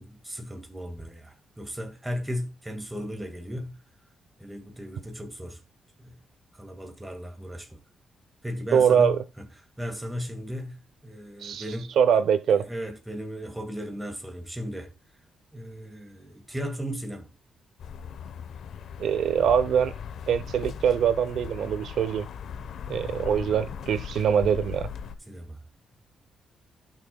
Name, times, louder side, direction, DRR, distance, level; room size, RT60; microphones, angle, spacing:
voice 1, 0.0-3.8 4.4-5.6 6.0-6.2 6.5-7.8 8.4-9.4 9.8-11.9 12.6-14.9 15.5-17.3 25.3-25.6, equal, 5° right, 1.8 m, -36 dB
voice 2, 8.7-9.2 11.4-11.6 12.0-12.6 19.0-19.9 20.3-22.3 22.9-24.9, right 8 dB, 70° right, 0.7 m, -23 dB
sound 1, 17.8-25.2, left 7 dB, 65° left, 0.9 m, -38 dB
16.0 x 6.1 x 2.3 m
cardioid pair, 145°, 0 cm